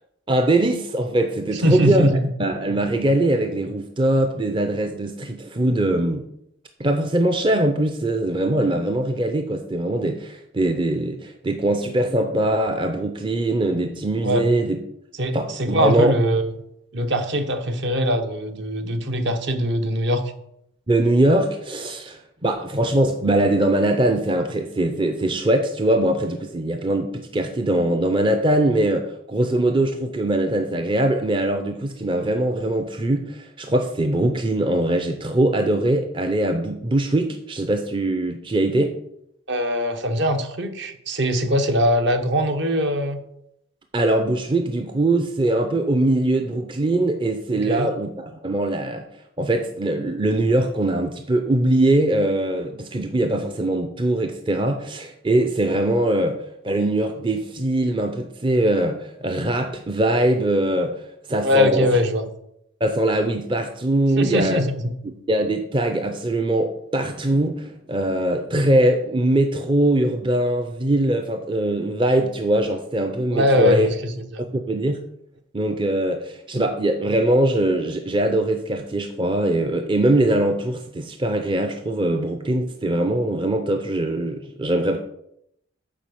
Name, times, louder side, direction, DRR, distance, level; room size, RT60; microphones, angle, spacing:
voice 1, 0.3-6.3 6.8-14.8 15.3-16.2 20.9-39.0 43.9-49.1 49.4-61.9 62.8-64.6 65.0-73.9 74.4-75.0 75.5-85.0, right 1 dB, 25° right, 5 dB, 0.5 m, -22 dB
voice 2, 1.5-2.2 14.2-14.5 15.2-16.5 16.9-20.2 39.5-43.2 47.5-47.9 61.4-62.3 64.2-64.9 73.3-74.4, equal, 55° right, 7 dB, 0.9 m, -22 dB
7.4 x 4.8 x 6.9 m, 0.78 s
head